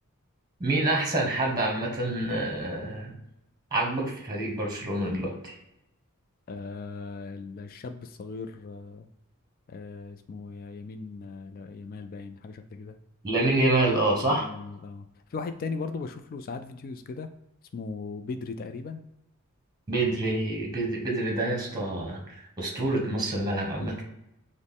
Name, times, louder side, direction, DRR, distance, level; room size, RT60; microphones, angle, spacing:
voice 1, 0.6-3.1 3.7-5.6 13.2-14.5 19.9-24.0, right 2 dB, 20° right, 0 dB, 1.0 m, -27 dB
voice 2, 6.5-9.1 9.7-13.0 14.2-17.3 17.7-19.0, left 4 dB, 40° left, 8 dB, 0.3 m, -38 dB
6.1 x 2.1 x 3.5 m, 0.86 s
head